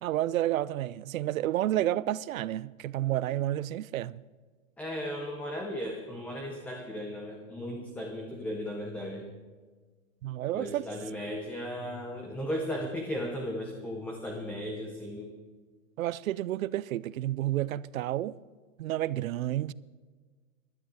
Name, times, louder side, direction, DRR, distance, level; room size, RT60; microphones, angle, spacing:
voice 1, 0.0-4.2 10.2-10.8 16.0-18.3 18.8-19.7, right 13 dB, 75° right, 0.6 m, -30 dB
voice 2, 4.8-9.3 10.5-15.3, equal, 5° left, 0.7 m, -36 dB
16.5 x 12.0 x 4.8 m
supercardioid pair, 160°, 41 cm